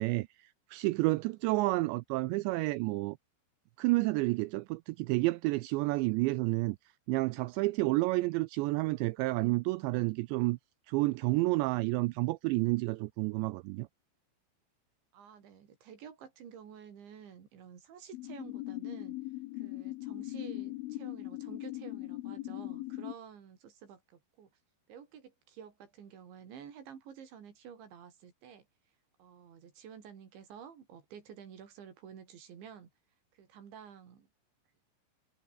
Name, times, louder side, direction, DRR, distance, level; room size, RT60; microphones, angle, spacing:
voice 1, 0.0-3.2 3.8-6.8 7.1-10.6 10.9-13.9, right 21 dB, 85° right, 2.6 m, -30 dB
voice 2, 15.1-19.2 19.5-24.5 24.9-28.7 29.2-32.9 33.3-34.3, right 8 dB, 65° right, 5.8 m, -51 dB
sound 1, 18.1-23.1, left 18 dB, 85° left, 3.4 m, -40 dB
omnidirectional pair, 5.6 m